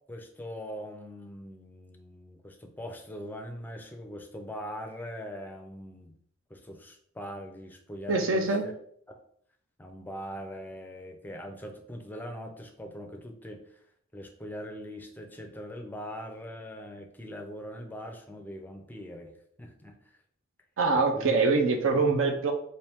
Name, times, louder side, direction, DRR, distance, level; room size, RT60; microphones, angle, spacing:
voice 1, 0.1-6.1 6.5-8.7 9.1-9.2 9.8-13.8 14.1-19.3 19.6-20.0 20.9-21.4 21.9-22.3, equal, 10° left, 4 dB, 0.5 m, -41 dB
voice 2, 8.1-8.7 20.8-22.5, right 3 dB, 70° right, 5 dB, 0.7 m, -24 dB
4.3 x 2.6 x 3.4 m, 0.67 s
head